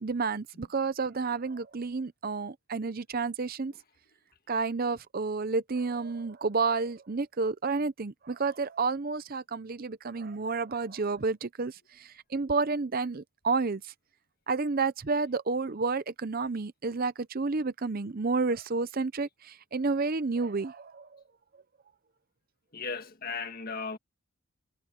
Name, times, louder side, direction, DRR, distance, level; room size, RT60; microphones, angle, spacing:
voice 1, 0.0-3.7 4.5-13.9 14.5-21.2, right 4 dB, 40° right, 0.6 m, -30 dB
voice 2, 22.7-24.0, left 4 dB, 40° left, 1.8 m, -36 dB
head